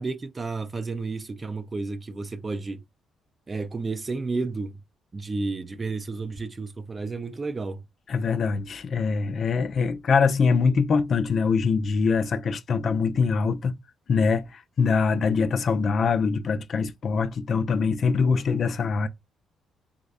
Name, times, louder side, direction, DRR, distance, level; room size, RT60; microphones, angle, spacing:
voice 1, 0.0-2.8 3.5-4.8 5.1-7.8, right 3 dB, 30° right, 0.4 m, -31 dB
voice 2, 8.1-13.7 14.1-19.1, left 5 dB, 55° left, 0.4 m, -23 dB
3.3 x 2.1 x 3.6 m
cardioid pair, 90°, 0 cm